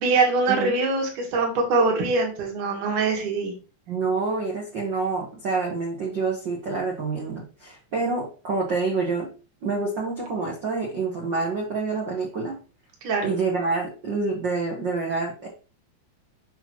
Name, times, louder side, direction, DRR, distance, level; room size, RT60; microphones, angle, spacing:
voice 1, 0.0-3.5 13.0-13.3, right 3 dB, 60° right, 1 dB, 3.0 m, -23 dB
voice 2, 3.9-9.3 9.6-12.6 13.2-15.5, right 4 dB, 75° right, -1 dB, 1.0 m, -27 dB
6.8 x 5.7 x 3.0 m, 0.34 s
omnidirectional pair, 4.2 m